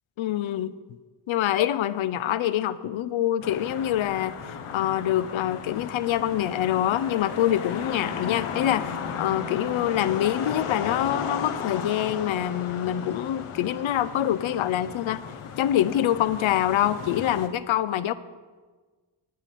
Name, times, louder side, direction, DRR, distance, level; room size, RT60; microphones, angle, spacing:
voice 1, 0.2-0.7 1.3-4.3 4.7-15.2 15.6-18.1, left 11 dB, 70° left, 15 dB, 0.6 m, -25 dB
sound 1, 3.4-17.5, left 6 dB, 90° left, 1.0 m, -35 dB
10.5 x 5.8 x 6.8 m, 1.4 s
cardioid pair, 95°, 49 cm